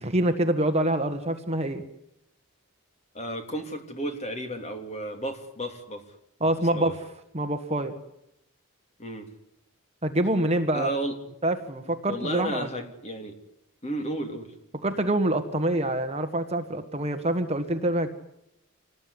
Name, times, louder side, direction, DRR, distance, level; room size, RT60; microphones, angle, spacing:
voice 1, 0.0-1.8 6.4-6.9 7.3-7.9 10.0-10.9 11.4-12.7 14.8-18.1, right 1 dB, 30° right, 7 dB, 1.6 m, -26 dB
voice 2, 3.1-6.0 6.4-6.9 9.0-9.3 10.7-11.2 12.1-13.4 13.8-14.5, right 1 dB, 30° left, 5 dB, 3.1 m, -33 dB
26.5 x 19.0 x 9.9 m, 0.82 s
head